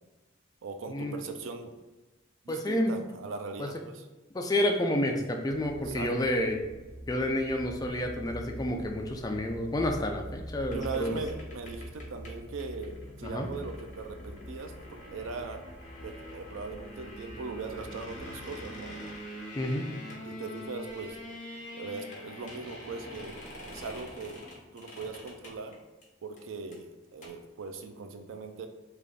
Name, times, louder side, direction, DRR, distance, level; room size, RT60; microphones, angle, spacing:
voice 1, 0.6-1.7 2.4-4.0 5.9-6.1 10.7-14.7 15.1-15.6 16.0-18.9 20.3-21.2 21.7-24.5 24.7-25.7 26.2-28.7, right 4 dB, 85° right, 6 dB, 0.4 m, -40 dB
voice 2, 2.5-3.0 3.6-3.8 4.3-6.6 7.1-11.1 13.2-13.5 19.6-19.9, left 1 dB, 20° left, 3 dB, 0.3 m, -29 dB
sound 1, 5.5-18.4, equal, 45° right, 0.7 m, -45 dB
sound 2, 10.7-26.0 26.4-26.5 26.7-26.8 27.1-27.3, equal, 40° left, 0.9 m, -45 dB
3.3 x 2.5 x 3.8 m, 1.1 s
head